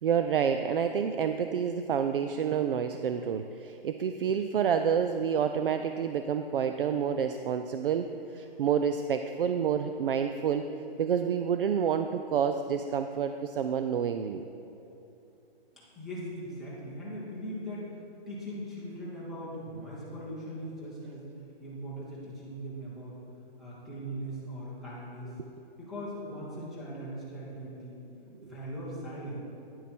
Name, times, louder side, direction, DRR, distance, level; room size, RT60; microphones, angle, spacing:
voice 1, 0.0-10.7 11.0-14.4 28.4-28.5, right 7 dB, 65° right, 7 dB, 0.5 m, -28 dB
voice 2, 15.7-21.3 21.6-23.2 23.6-25.3 25.8-28.0 28.4-29.4, equal, ahead, -9 dB, 0.7 m, -40 dB
10.0 x 7.5 x 4.3 m, 2.9 s
hypercardioid pair, 170°, 30 cm